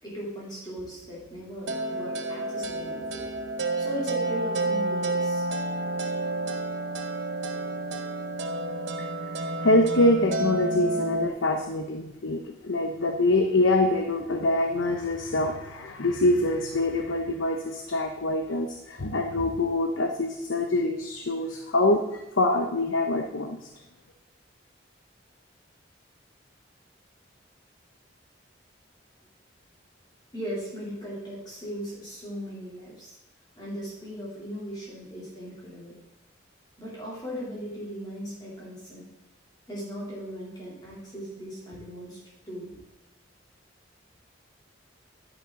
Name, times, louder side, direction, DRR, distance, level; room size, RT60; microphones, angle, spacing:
voice 1, 0.0-3.3 3.8-5.4 30.3-33.1 33.6-36.0 36.8-39.1 39.7-42.2 42.5-42.8, equal, 20° left, -6 dB, 3.2 m, -38 dB
sound 1, 1.7-11.3, right 2 dB, 65° right, 1.0 m, -30 dB
voice 2, 9.4-23.6, left 2 dB, 80° left, 4 dB, 0.9 m, -25 dB
11.0 x 10.5 x 3.9 m, 0.92 s
head